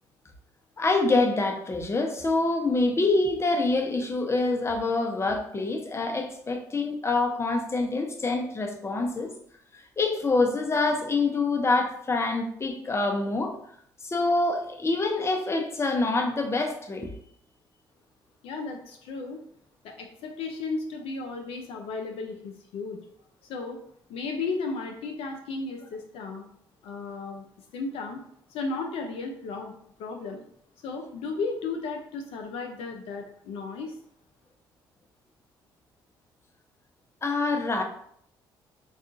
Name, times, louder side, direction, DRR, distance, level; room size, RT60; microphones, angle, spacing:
voice 1, 0.8-9.3 10.0-13.6 14.0-17.1 37.2-37.8, left 3 dB, 25° left, 4 dB, 0.6 m, -26 dB
voice 2, 18.4-19.4 19.8-23.0 23.5-23.8 24.1-26.5 26.8-27.5 27.7-28.2 28.5-29.7 30.0-30.4 30.8-33.9, left 4 dB, 65° left, 3 dB, 0.4 m, -34 dB
3.5 x 2.4 x 2.5 m, 0.67 s
hypercardioid pair, 50°, 10 cm